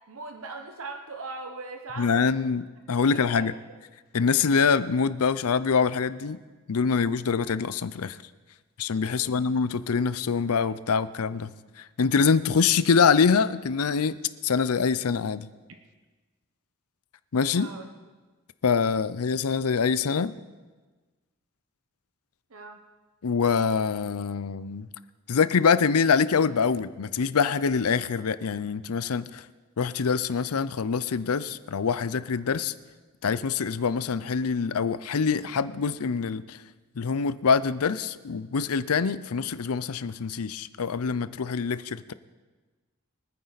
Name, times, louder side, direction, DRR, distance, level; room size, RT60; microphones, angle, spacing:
voice 1, 0.1-2.4 3.0-3.8 9.1-9.5 17.5-17.9 22.5-22.8, right 3 dB, 65° right, 5 dB, 1.0 m, -40 dB
voice 2, 2.0-3.5 4.1-6.4 6.7-8.2 8.8-11.5 12.0-14.2 14.4-15.5 17.3-17.7 18.6-20.4 23.2-24.9 25.3-29.4 29.8-32.7 33.2-36.6 37.0-42.1, left 5 dB, 75° left, 16 dB, 0.6 m, -25 dB
24.5 x 9.5 x 4.1 m, 1.3 s
head